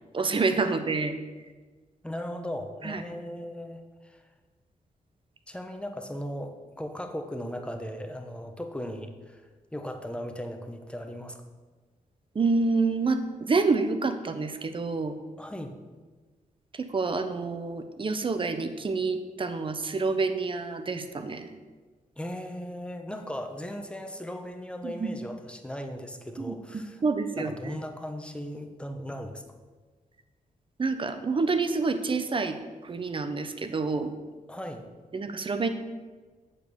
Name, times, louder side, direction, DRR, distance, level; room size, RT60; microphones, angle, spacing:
voice 1, 0.1-1.1 2.8-3.0 12.3-15.1 16.7-21.5 24.8-25.1 26.4-26.5 27.0-27.8 30.8-32.6 32.8-34.1 35.1-35.7, right 4 dB, 35° right, 9 dB, 0.9 m, -28 dB
voice 2, 2.0-4.2 5.5-11.4 15.4-15.7 22.2-27.0 27.3-29.4 34.5-34.9, equal, 5° left, 5 dB, 1.0 m, -37 dB
8.6 x 7.1 x 7.0 m, 1.4 s
wide cardioid pair, 115°, 15 cm